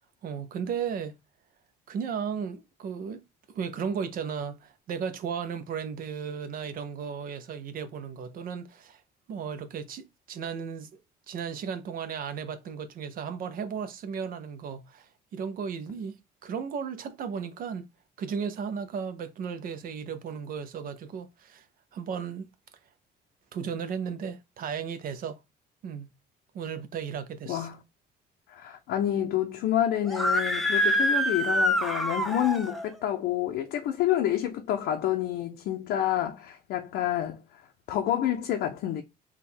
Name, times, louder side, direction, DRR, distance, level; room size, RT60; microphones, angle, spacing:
voice 1, 0.2-1.1 1.9-9.0 9.3-11.0 11.3-17.9 18.2-21.7 21.9-22.5 23.5-25.4 25.8-26.1 26.5-27.7, right 6 dB, 55° right, 0.6 m, -35 dB
voice 2, 28.5-37.4 37.9-39.0, left 11 dB, 75° left, 0.6 m, -28 dB
Screaming, 30.1-32.9, equal, ahead, 0.6 m, -26 dB
3.6 x 2.3 x 4.3 m
cardioid pair, 110°, 17 cm